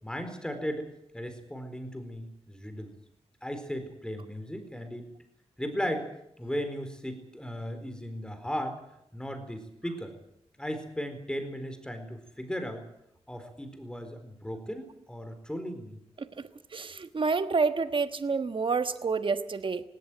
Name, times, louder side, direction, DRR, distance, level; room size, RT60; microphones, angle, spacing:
voice 1, 0.0-2.9 3.4-5.1 5.6-6.1 6.4-8.8 9.1-10.1 10.6-12.8 13.3-16.0, equal, 5° left, 7 dB, 4.3 m, -36 dB
voice 2, 16.7-19.8, right 4 dB, 45° right, 11 dB, 1.3 m, -28 dB
18.0 x 17.5 x 9.3 m, 0.78 s
wide cardioid pair, 90°, 12 cm